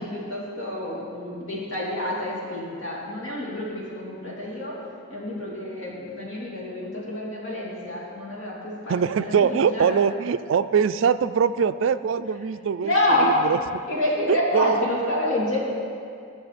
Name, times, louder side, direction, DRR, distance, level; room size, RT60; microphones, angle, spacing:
voice 1, 0.0-4.8 5.1-9.9 12.8-13.3 13.9-15.6, left 1 dB, 65° left, -4 dB, 3.0 m, -28 dB
voice 2, 8.9-12.9 13.2-13.6 14.3-14.8, right 6 dB, 60° right, 12 dB, 0.3 m, -22 dB
21.0 x 7.1 x 4.2 m, 2.4 s
head